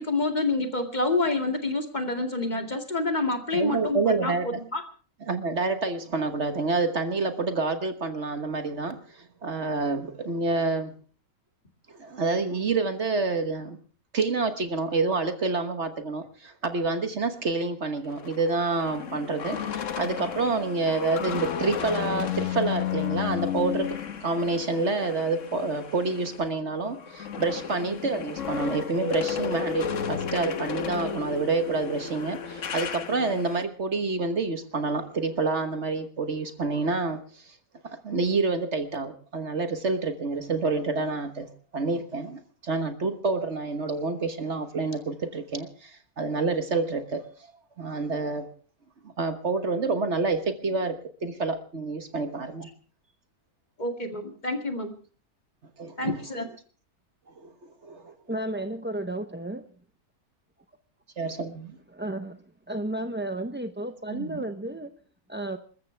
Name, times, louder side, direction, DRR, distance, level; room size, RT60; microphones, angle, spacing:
voice 1, 0.0-4.8 53.8-54.9 56.0-56.4, left 2 dB, 30° left, 4 dB, 2.3 m, -28 dB
voice 2, 3.5-4.5 5.3-10.9 11.9-13.8 14.1-37.2 38.0-47.2 47.8-48.5 49.2-52.7 55.8-56.2 57.4-58.1 61.2-61.7 64.1-64.4, right 3 dB, 50° right, 8 dB, 1.5 m, -28 dB
sound 1, 18.0-26.4 26.8-33.6, left 8 dB, 60° left, 1.4 m, -33 dB
voice 3, 58.3-59.6 62.0-64.9 65.3-65.6, right 1 dB, 15° right, 8 dB, 0.4 m, -33 dB
27.0 x 14.0 x 3.4 m, 0.40 s
omnidirectional pair, 1.6 m